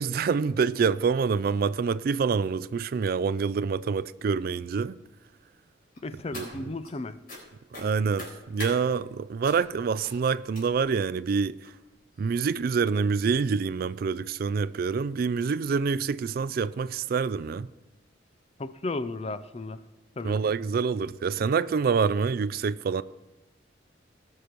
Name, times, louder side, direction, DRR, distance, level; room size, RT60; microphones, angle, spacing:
voice 1, 0.0-5.0 6.3-6.7 7.8-11.6 12.2-17.7 20.2-23.0, right 5 dB, 55° right, 0.3 m, -26 dB
sound 1, 5.9-6.9 7.3-7.4 7.7-8.7 9.4-9.7 10.0-10.2 10.5-10.9 11.6-11.7 12.1-12.3 12.6-12.7, left 1 dB, 50° left, 3.9 m, -42 dB
voice 2, 6.0-7.2 18.6-19.8 20.2-20.4, left 2 dB, 35° left, 0.5 m, -34 dB
18.5 x 6.6 x 4.5 m
head